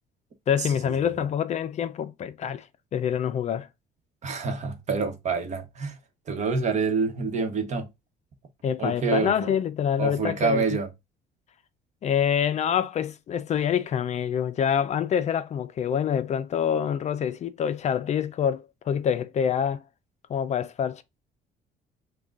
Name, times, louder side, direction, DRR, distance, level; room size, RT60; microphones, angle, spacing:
voice 1, 0.5-3.7 8.6-10.6 12.0-19.8 20.3-21.0, left 8 dB, 40° left, 0.4 m, -26 dB
voice 2, 4.2-6.0 6.3-7.9 8.8-9.5 10.0-10.9, right 5 dB, 45° right, 1.0 m, -27 dB
4.9 x 2.3 x 3.8 m
cardioid pair, 110°, 17 cm